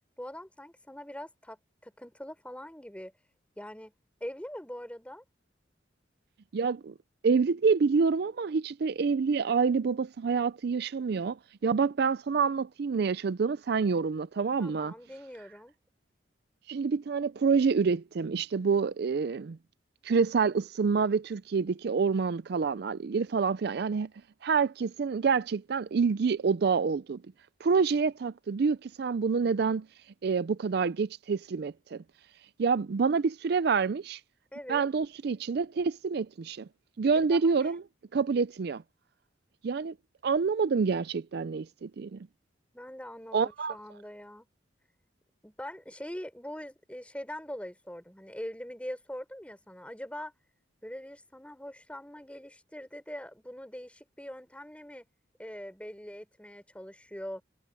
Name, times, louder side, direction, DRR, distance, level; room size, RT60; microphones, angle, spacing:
voice 1, 0.2-3.1 3.6-3.9 4.2-5.2 14.6-15.7 34.5-34.9 37.2-37.7 42.7-44.5 45.4-50.3 50.8-55.1 55.4-57.4, equal, 5° left, 5.0 m, -42 dB
voice 2, 6.5-6.9 7.2-14.9 16.7-19.6 20.0-24.1 24.4-27.2 27.6-29.9 30.2-32.0 32.6-34.2 34.7-36.7 37.0-37.8 38.1-38.8 39.6-39.9 40.2-42.3 43.3-43.8, right 5 dB, 60° right, 0.4 m, -27 dB
head